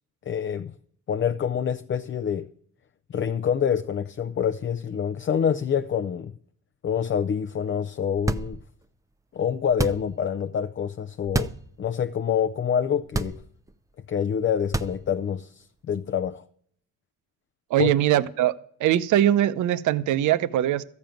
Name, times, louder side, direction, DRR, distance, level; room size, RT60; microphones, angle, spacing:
voice 1, 0.3-0.7 1.1-2.5 3.1-6.3 6.8-8.6 9.3-11.5 11.8-13.4 14.1-16.4 17.8-17.9, left 8 dB, 40° left, 0.5 m, -26 dB
sound 1, 8.1-8.8 9.7-10.3 11.2-11.7 12.1-12.2 13.0-13.7 14.6-15.3, right 2 dB, 10° right, 0.6 m, -29 dB
voice 2, 17.7-18.5 18.8-20.8, right 12 dB, 75° right, 0.7 m, -21 dB
13.5 x 5.3 x 9.1 m
cardioid pair, 90°, 30 cm